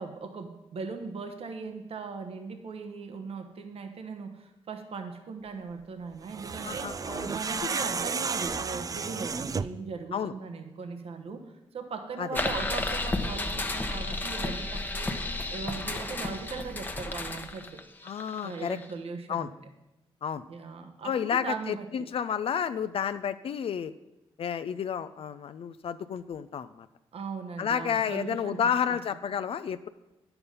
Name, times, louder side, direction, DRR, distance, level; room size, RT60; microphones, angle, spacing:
voice 1, 0.0-15.2 15.5-17.8 18.4-19.6 20.5-22.1 27.1-28.6 28.9-29.0, right 4 dB, 65° right, 6 dB, 1.1 m, -39 dB
sound 1, 6.2-9.9, right 5 dB, 35° right, 0.4 m, -32 dB
voice 2, 6.6-7.4 10.1-10.3 12.2-12.4 18.0-18.8 19.3-19.5 20.2-20.4 21.0-23.9 24.4-26.9 27.6-29.9, left 8 dB, 60° left, 12 dB, 0.4 m, -31 dB
sound 2, 12.3-18.9, left 2 dB, 20° left, 0.9 m, -32 dB
9.7 x 6.9 x 5.4 m, 0.97 s
cardioid pair, 70°, 11 cm